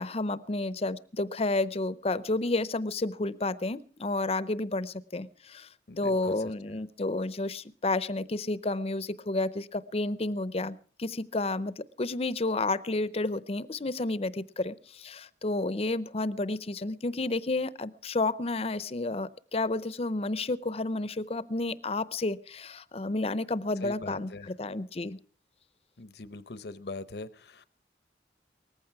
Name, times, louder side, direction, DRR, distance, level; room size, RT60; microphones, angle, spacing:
voice 1, 0.0-5.7 5.9-25.2, left 2 dB, 35° left, 17 dB, 0.6 m, -31 dB
voice 2, 5.9-6.8 23.8-24.5 26.0-27.6, left 3 dB, 65° left, 15 dB, 0.8 m, -42 dB
19.0 x 15.0 x 4.7 m, 0.43 s
head